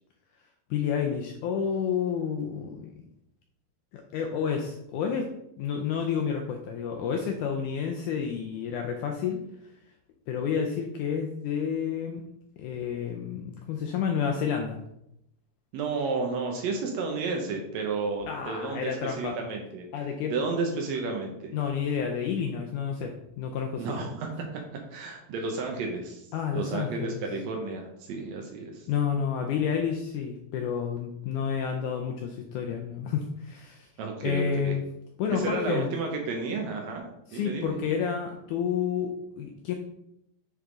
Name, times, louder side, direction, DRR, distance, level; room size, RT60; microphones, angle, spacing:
voice 1, 0.7-2.9 3.9-5.3 5.6-9.4 10.3-12.2 12.6-14.8 18.3-19.3 19.9-20.3 21.5-23.9 26.3-27.2 28.9-33.9 34.2-34.8 35.2-35.9 37.3-39.7, left 7 dB, 85° left, 3 dB, 1.7 m, -30 dB
voice 2, 15.7-19.8 20.3-21.5 23.8-24.5 24.9-26.2 26.5-28.9 34.0-34.7 35.3-37.0 37.3-37.8, right 4 dB, 90° right, 2 dB, 1.5 m, -32 dB
9.8 x 3.6 x 3.8 m, 0.80 s
omnidirectional pair, 4.3 m